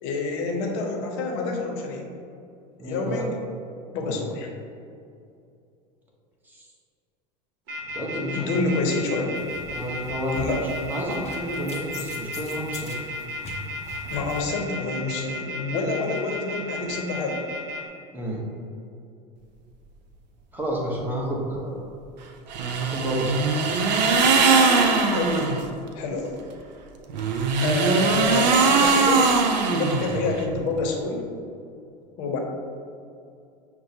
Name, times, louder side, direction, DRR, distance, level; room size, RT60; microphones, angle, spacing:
voice 1, 0.0-2.1 2.8-3.4 3.9-4.5 8.3-9.3 10.3-10.6 14.1-17.4 25.1-25.6 26.0-26.4 27.6-29.3 29.7-31.2 32.2-32.4, left 3 dB, 65° left, 1 dB, 0.8 m, -27 dB
voice 2, 2.8-3.2 4.0-4.2 6.6-6.7 7.9-8.5 9.7-10.5 10.9-13.0 18.1-18.4 20.5-21.7 22.8-23.4, equal, 10° right, -4 dB, 1.0 m, -30 dB
sound 1, 7.7-17.8, left 1 dB, 55° right, 1.1 m, -34 dB
sound 2, 9.3-14.4, left 3 dB, 30° left, 0.6 m, -41 dB
sound 3, 22.5-25.6 27.1-30.4, right 4 dB, 90° right, 0.5 m, -21 dB
6.3 x 2.2 x 2.8 m, 2.5 s
supercardioid pair, 105°, 21 cm